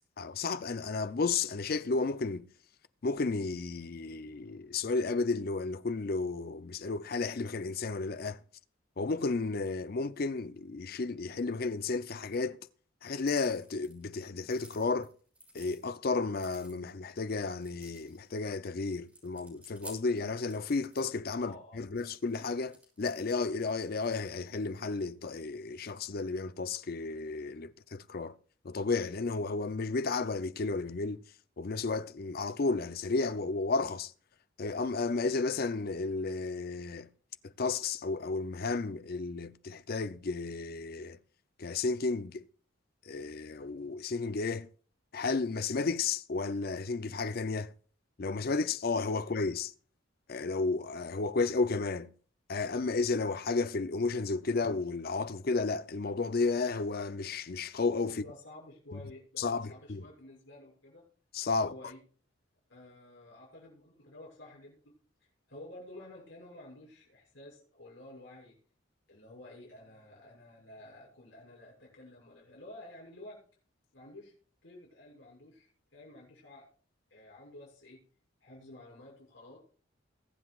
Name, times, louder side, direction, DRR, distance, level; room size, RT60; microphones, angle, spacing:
voice 1, 0.2-2.5 3.0-8.4 9.0-12.6 13.0-15.1 15.5-28.4 28.6-31.2 31.6-34.1 34.6-37.1 37.4-41.2 41.6-42.4 43.0-44.7 45.1-47.7 48.2-49.7 50.3-52.1 52.5-58.2 58.9-59.0 59.4-60.1 61.3-61.7, left 3 dB, 50° left, 0.5 m, -33 dB
sound 1, 13.2-14.1 14.4-15.8 16.3-17.0 17.5-18.4 18.8-21.1 22.0-24.9, right 1 dB, 5° right, 5.8 m, -54 dB
voice 2, 21.4-21.8 58.1-61.0 61.5-62.0 62.7-64.9 65.2-68.5 69.1-73.4 73.9-74.3 74.6-76.6 77.1-78.0 78.4-79.6, left 1 dB, 70° left, 6.6 m, -51 dB
22.0 x 8.0 x 2.4 m
head